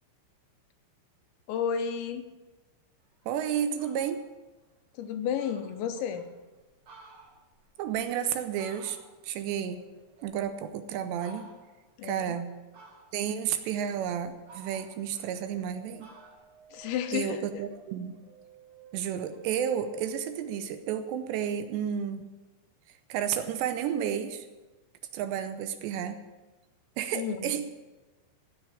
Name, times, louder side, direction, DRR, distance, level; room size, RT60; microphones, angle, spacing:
voice 1, 1.5-2.4 5.0-6.3 12.0-12.4 16.7-17.5 27.1-27.6, left 8 dB, 85° left, 9 dB, 3.0 m, -32 dB
Fowl, 3.1-3.2 3.6-4.2 4.7-4.8 5.1-5.2 5.4-6.3 6.7-9.3 9.7-10.7 11.1-11.8 12.7-13.4 13.9-15.7 16.0-17.6, right 3 dB, 40° right, 2.2 m, -54 dB
voice 2, 3.3-4.2 7.8-9.0 9.2-9.8 10.2-11.5 12.0-12.5 13.1-16.1 17.1-18.2 18.9-22.3 23.1-24.5 25.1-26.2 27.0-27.7, right 9 dB, 80° right, 10 dB, 2.7 m, -31 dB
sound 1, 15.4-20.7, right 4 dB, 60° right, 3.2 m, -56 dB
16.0 x 6.1 x 9.9 m, 1.2 s
omnidirectional pair, 5.3 m